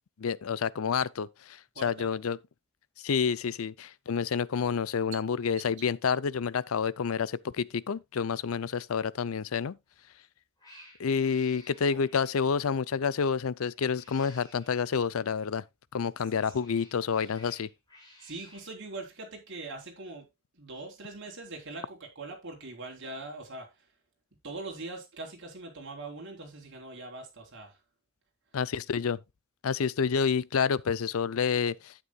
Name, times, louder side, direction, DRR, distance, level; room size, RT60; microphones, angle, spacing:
voice 1, 0.2-2.4 3.0-9.8 11.0-15.6 15.9-17.7 28.5-29.2 29.6-31.9, left 6 dB, 85° left, 0.5 m, -29 dB
voice 2, 1.8-2.1 11.9-12.0 16.9-17.0 18.2-20.3 20.5-23.7 24.4-27.8, right 2 dB, 60° right, 3.8 m, -42 dB
Cat, 9.9-10.2 10.6-12.6 13.7-14.8 16.1-18.7, left 1 dB, 20° left, 5.6 m, -56 dB
11.0 x 9.3 x 2.3 m
head